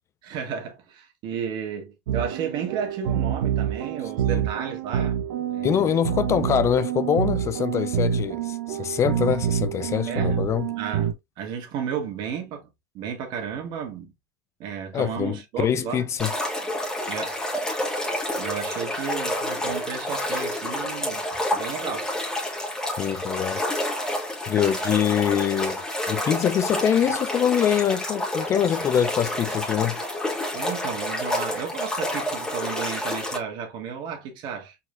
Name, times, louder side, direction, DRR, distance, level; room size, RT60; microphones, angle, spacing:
voice 1, 0.2-5.2 5.5-5.9 10.1-10.4 10.7-14.1 14.6-16.0 17.1-17.4 18.3-22.1 30.5-34.8, right 7 dB, 50° right, 1.7 m, -33 dB
sound 1, 2.1-11.1, right 8 dB, 75° right, 0.8 m, -27 dB
voice 2, 5.6-10.7 14.9-16.3 23.0-23.6 24.5-25.8 26.1-30.0, left 9 dB, 30° left, 0.4 m, -24 dB
sound 2, 16.2-33.4, left 1 dB, 5° left, 1.6 m, -29 dB
4.9 x 4.2 x 2.4 m
supercardioid pair, 120°, 10 cm